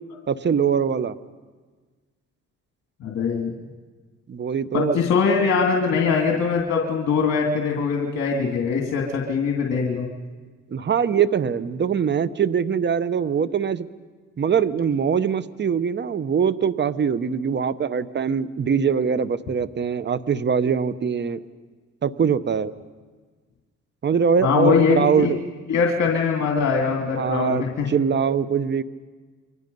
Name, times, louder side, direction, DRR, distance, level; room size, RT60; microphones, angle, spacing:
voice 1, 0.3-1.2 4.3-5.0 10.7-13.9 14.4-21.4 22.0-22.7 24.0-25.4 27.1-28.8, right 7 dB, 35° right, 15 dB, 0.9 m, -22 dB
voice 2, 3.0-3.5 4.7-10.1 24.4-25.3 25.7-27.9, left 5 dB, 60° left, -1 dB, 2.5 m, -22 dB
29.0 x 23.5 x 5.4 m, 1.4 s
cardioid pair, 90°, 30 cm